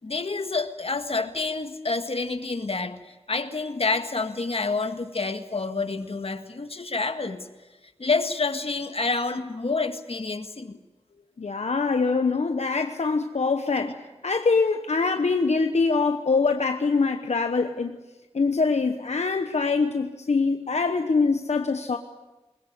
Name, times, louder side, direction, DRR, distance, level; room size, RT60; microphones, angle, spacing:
voice 1, 0.0-3.0 3.3-7.5 8.0-10.8 13.8-13.9, left 3 dB, 60° left, 8 dB, 1.8 m, -28 dB
voice 2, 11.4-18.0 18.3-22.0, left 4 dB, 80° left, 6 dB, 1.0 m, -24 dB
21.0 x 20.5 x 9.6 m, 1.1 s
wide cardioid pair, 60°, 11 cm